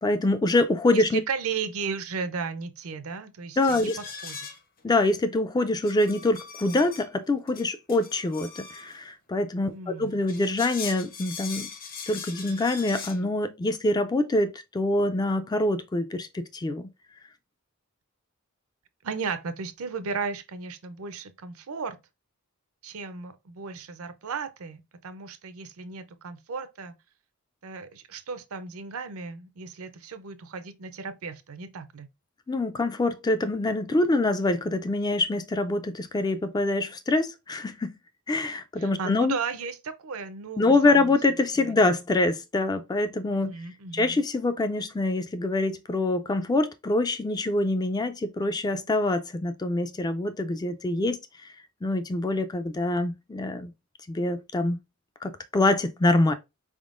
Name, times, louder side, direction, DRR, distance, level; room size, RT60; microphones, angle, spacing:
voice 1, 0.0-1.2 3.6-4.0 4.8-11.7 12.1-16.9 32.5-37.9 38.3-39.4 40.6-43.6 43.9-51.2 51.8-53.7 54.1-54.8 55.2-56.3, left 2 dB, 20° left, 0.3 m, -25 dB
voice 2, 0.9-4.5 9.7-10.2 19.0-22.0 22.8-26.9 27.6-32.1 38.8-41.2 41.6-41.9 43.3-44.2, right 5 dB, 70° right, 0.5 m, -35 dB
sound 1, 3.6-4.8 5.8-7.1 7.5-9.0 10.1-13.2, left 6 dB, 40° left, 0.7 m, -40 dB
4.3 x 3.6 x 2.5 m
head